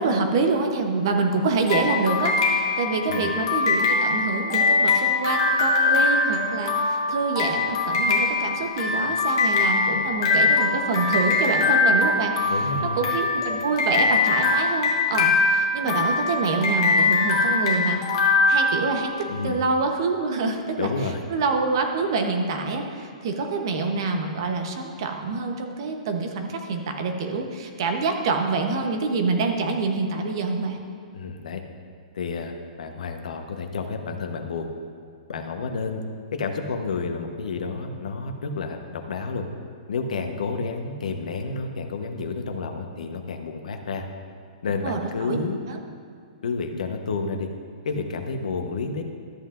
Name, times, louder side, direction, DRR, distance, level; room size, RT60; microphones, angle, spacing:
voice 1, 0.0-2.4 2.8-12.5 13.0-18.0 18.3-20.9 21.3-30.8 44.8-45.8, right 3 dB, 40° right, 4 dB, 0.9 m, -26 dB
sound 1, 1.7-19.3, left 3 dB, 35° left, 1.2 m, -22 dB
voice 2, 12.4-13.1 19.3-19.6 20.8-21.2 31.1-31.6 32.1-34.7 35.3-36.0 36.3-39.4 39.9-44.0 44.6-45.6 46.4-47.5 47.8-49.0, left 4 dB, 75° left, 5 dB, 1.0 m, -30 dB
13.0 x 7.9 x 2.5 m, 2.3 s
hypercardioid pair, 180°, 4 cm